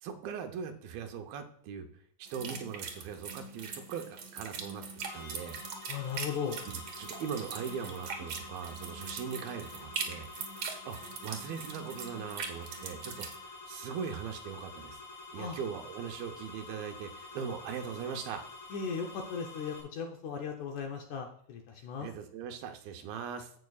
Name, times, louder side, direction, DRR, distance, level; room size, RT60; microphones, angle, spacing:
voice 1, 0.0-1.9 2.2-4.8 5.1-5.6 7.0-10.3 10.7-15.0 15.3-18.5 21.8-23.5, right 7 dB, 80° right, 5 dB, 2.7 m, -40 dB
sound 1, 2.3-13.4, right 5 dB, 60° right, 1.7 m, -42 dB
sound 2, 5.0-19.8, left 3 dB, 35° left, 3.3 m, -48 dB
voice 2, 5.9-6.6 15.3-15.6 18.7-22.1, left 6 dB, 70° left, 2 dB, 1.9 m, -37 dB
16.0 x 6.0 x 2.4 m, 0.64 s
omnidirectional pair, 4.2 m